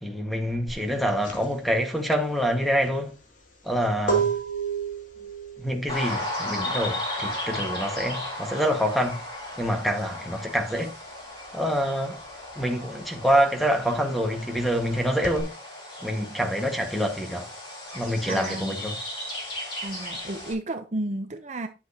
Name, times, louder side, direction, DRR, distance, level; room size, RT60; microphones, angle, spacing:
voice 1, 0.0-3.1 3.6-4.3 5.6-9.2 9.6-10.9 11.5-12.2 12.5-15.5 16.0-17.5 17.9-19.0, equal, ahead, 1.7 m, -26 dB
sound 1, 0.7-10.9 11.2-15.4, right 6 dB, 45° left, 2.7 m, -33 dB
sound 2, 5.9-20.5, left 1 dB, 30° left, 4.9 m, -35 dB
voice 2, 18.3-18.7 19.8-21.7, right 2 dB, 40° right, 0.7 m, -32 dB
10.0 x 7.6 x 2.9 m
head